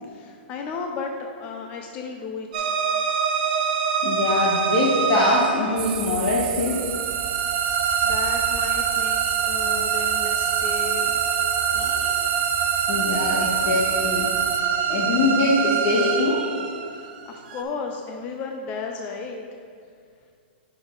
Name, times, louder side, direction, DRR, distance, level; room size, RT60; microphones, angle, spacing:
voice 1, 0.0-2.8 8.0-9.2 9.5-11.2 11.7-11.9 16.8-19.6, left 4 dB, 25° left, 2 dB, 0.5 m, -34 dB
sound 1, 2.5-17.6, right 7 dB, 50° right, 1.3 m, -25 dB
voice 2, 4.0-6.9 11.8-12.1 12.9-14.3 14.9-16.5, left 2 dB, 45° left, -4 dB, 1.3 m, -23 dB
sound 2, 5.8-14.6, right 12 dB, 30° right, 0.4 m, -31 dB
8.9 x 6.1 x 3.9 m, 2.2 s
hypercardioid pair, 160°, 6 cm